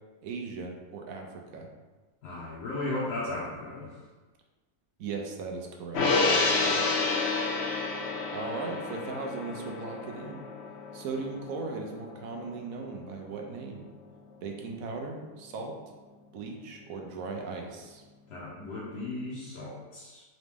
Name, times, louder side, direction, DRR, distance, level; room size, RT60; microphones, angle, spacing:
voice 1, 0.2-1.7 5.0-6.8 8.3-10.5 10.9-13.9 14.4-15.8 16.3-18.0, right 4 dB, 70° right, 1 dB, 0.9 m, -38 dB
voice 2, 2.2-3.9 18.3-20.2, left 2 dB, 90° left, -9 dB, 1.5 m, -35 dB
Gong, 5.9-12.6 12.9-13.0, left 3 dB, 65° left, 0.6 m, -29 dB
3.9 x 3.1 x 3.4 m, 1.2 s
omnidirectional pair, 1.7 m